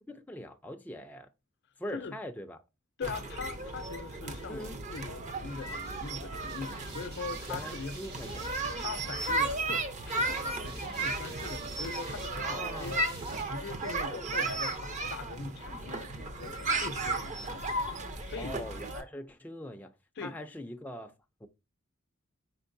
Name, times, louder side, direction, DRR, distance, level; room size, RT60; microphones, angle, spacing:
voice 1, 0.1-1.3 1.8-2.6 4.5-4.8 7.5-8.5 12.4-13.0 18.4-21.1 21.4-21.5, left 1 dB, 10° left, 0.4 m, -42 dB
voice 2, 3.0-8.0 8.8-13.0 13.4-18.6 20.2-20.4, left 5 dB, 55° left, 0.6 m, -42 dB
sound 1, 3.0-19.0, right 2 dB, 35° right, 0.7 m, -35 dB
sound 2, 5.4-13.4, right 3 dB, 50° right, 1.5 m, -50 dB
4.5 x 4.5 x 2.6 m
head